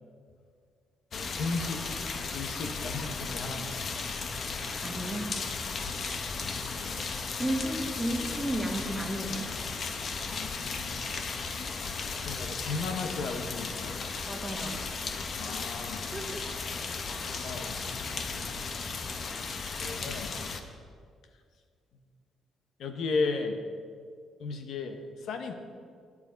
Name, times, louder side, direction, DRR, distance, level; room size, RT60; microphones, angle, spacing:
voice 1, 1.1-1.8 2.3-3.8 6.4-7.0 10.3-11.0 12.2-14.0 15.4-16.0 16.8-16.9 17.3-18.0 19.8-20.3 22.8-23.6 24.4-25.5, left 4 dB, 75° left, 6 dB, 1.0 m, -35 dB
sound 1, 1.1-20.6, left 4 dB, 50° left, 0.9 m, -35 dB
voice 2, 4.8-5.4 7.3-9.5 14.3-14.8 16.0-16.4, right 1 dB, 10° right, 2 dB, 1.6 m, -33 dB
11.0 x 9.9 x 5.2 m, 2.1 s
cardioid pair, 90°, 0 cm